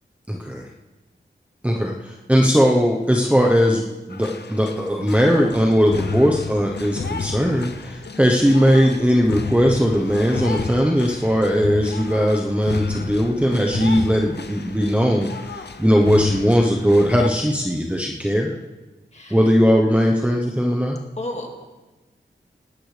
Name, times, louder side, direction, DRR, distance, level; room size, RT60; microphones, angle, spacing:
voice 1, 0.3-0.6 1.6-15.3 15.8-18.5 19.3-21.0, equal, 5° right, 0 dB, 1.0 m, -19 dB
sound 1, 4.1-17.3, left 4 dB, 60° left, 0.7 m, -31 dB
voice 2, 21.2-21.5, left 1 dB, 35° left, 0 dB, 2.2 m, -31 dB
19.0 x 13.0 x 3.4 m, 1.2 s
wide cardioid pair, 100°, 19 cm